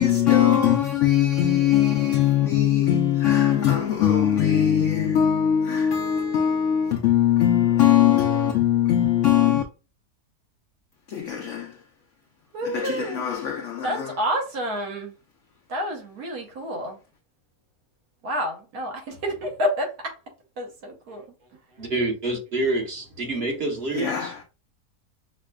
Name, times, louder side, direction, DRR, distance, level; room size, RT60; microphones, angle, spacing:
voice 1, 0.0-9.6 11.1-11.8 12.6-14.1 23.9-24.4, left 10 dB, 70° left, 0.7 m, -21 dB
voice 2, 12.5-13.3 13.8-15.1 15.7-17.0 18.2-20.2 20.6-21.3, equal, 65° right, 1.5 m, -29 dB
voice 3, 21.8-24.3, right 2 dB, 45° right, 1.0 m, -27 dB
5.5 x 2.2 x 2.2 m
omnidirectional pair, 1.7 m